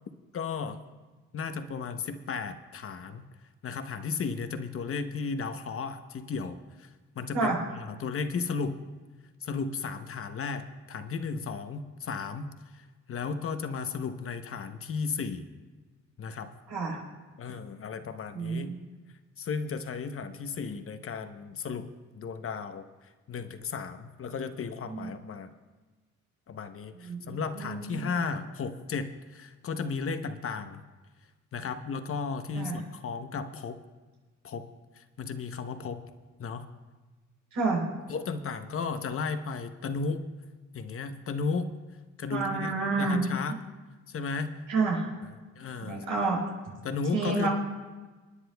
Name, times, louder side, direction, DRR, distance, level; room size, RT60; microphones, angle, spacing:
voice 1, 0.3-0.8 1.3-3.2 3.6-8.8 9.4-15.5 16.2-16.5 17.4-18.8 19.4-25.5 26.5-30.8 31.5-33.8 34.4-34.6 34.9-36.0 36.4-36.6 38.1-40.2 40.7-41.8 42.2-43.6 44.1-44.5 45.2-46.0 46.8-47.5, left 5 dB, 45° left, 9 dB, 0.9 m, -34 dB
voice 2, 16.7-17.0 18.3-18.8 24.9-25.1 27.0-28.1 32.6-32.8 37.5-37.8 42.3-43.2 44.7-45.0 45.8-46.4 47.1-47.5, right 4 dB, 90° right, -3 dB, 3.9 m, -29 dB
28.0 x 9.8 x 2.3 m, 1.3 s
cardioid pair, 90°, 30 cm